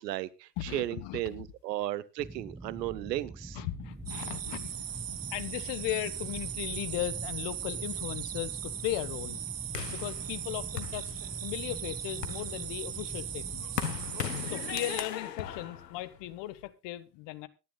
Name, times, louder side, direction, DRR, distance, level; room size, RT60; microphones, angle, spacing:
voice 1, 0.0-3.6, right 14 dB, 80° right, 0.9 m, -35 dB
voice 2, 0.6-1.5 3.5-9.4 9.9-13.8 14.4-17.5, left 15 dB, 60° left, 1.3 m, -37 dB
sound 1, 2.2-14.1, right 2 dB, 10° right, 1.2 m, -45 dB
sound 2, 4.1-15.1, right 10 dB, 45° right, 1.6 m, -38 dB
sound 3, 9.7-11.6 12.0-16.7, left 10 dB, 90° left, 1.1 m, -38 dB
24.0 x 10.5 x 2.3 m
hypercardioid pair, 60°, 48 cm